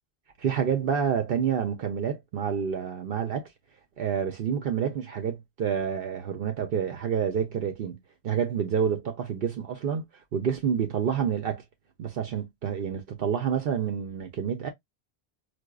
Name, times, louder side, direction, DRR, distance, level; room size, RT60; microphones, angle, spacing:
voice 1, 0.4-3.5 4.0-8.0 8.2-10.0 10.3-11.6 12.0-14.7, right 7 dB, 65° right, 0.8 m, -28 dB
4.7 x 2.3 x 2.2 m
omnidirectional pair, 1.1 m